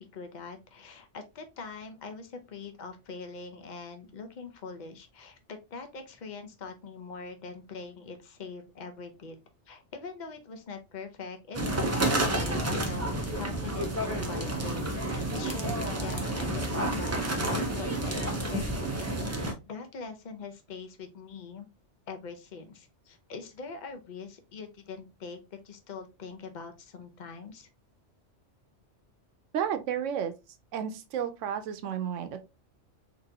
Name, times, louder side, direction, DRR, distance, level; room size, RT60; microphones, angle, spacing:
voice 1, 0.0-9.4 9.7-21.7 22.1-27.7, left 4 dB, 45° left, 0.7 m, -43 dB
sound 1, 11.5-19.5, right 1 dB, 20° right, 0.5 m, -30 dB
voice 2, 29.5-30.3 30.7-32.5, right 8 dB, 90° right, 0.9 m, -32 dB
4.0 x 2.9 x 2.7 m
omnidirectional pair, 1.2 m